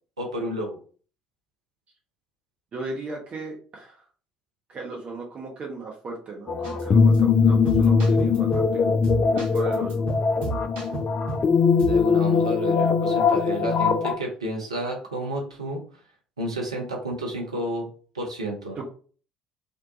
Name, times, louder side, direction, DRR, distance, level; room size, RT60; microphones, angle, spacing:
voice 1, 0.2-0.8 11.8-15.8 16.4-17.9 18.1-18.8, right 1 dB, 85° right, -1 dB, 0.6 m, -31 dB
voice 2, 2.7-4.0 4.7-8.9 9.3-10.1 18.8-18.9, right 3 dB, 40° right, -1 dB, 0.7 m, -36 dB
sound 1, 6.5-14.2, left 5 dB, 40° left, 0.4 m, -21 dB
sound 2, 6.6-6.9 7.1-7.2 7.7-8.7 9.0-11.5 11.8-12.0, right 3 dB, 60° right, 1.0 m, -33 dB
2.6 x 2.1 x 2.7 m, 0.41 s
figure-of-eight pair, 55°, 3 cm